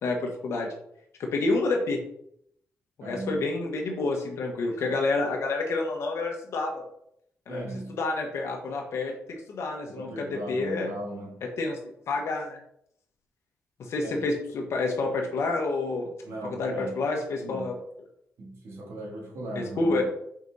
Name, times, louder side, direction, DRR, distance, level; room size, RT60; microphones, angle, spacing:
voice 1, 0.0-0.7 1.2-2.0 3.0-6.8 7.5-7.6 7.9-10.9 11.6-11.8 12.1-12.6 13.8-16.1 16.5-17.8 19.5-20.0, left 3 dB, 75° left, 1 dB, 1.2 m, -28 dB
voice 2, 3.0-3.4 7.5-8.0 9.9-11.4 14.0-14.3 16.2-17.0 17.4-17.8 18.4-20.0, right 1 dB, 70° right, -3 dB, 2.9 m, -37 dB
6.1 x 4.9 x 4.1 m, 0.72 s
cardioid pair, 95°, 5 cm